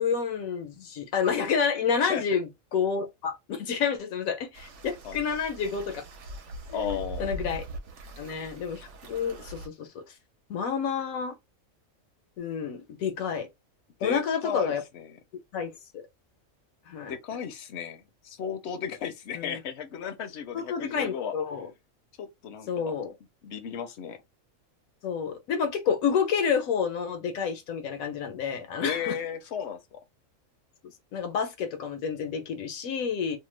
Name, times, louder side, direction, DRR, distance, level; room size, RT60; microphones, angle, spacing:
voice 1, 0.0-6.0 6.7-7.6 8.2-10.0 10.5-11.3 12.4-13.5 14.0-14.8 15.5-16.0 16.9-17.1 19.3-19.6 20.5-21.7 22.7-23.1 25.0-29.2 31.1-33.4, left 6 dB, 85° left, 1.1 m, -29 dB
sound 1, 4.5-9.7, right 1 dB, 65° right, 1.0 m, -41 dB
voice 2, 6.7-7.3 14.0-15.2 17.1-21.3 22.2-22.9 23.4-24.2 28.8-30.0, left 8 dB, 65° left, 0.8 m, -35 dB
2.7 x 2.2 x 3.2 m
omnidirectional pair, 1.4 m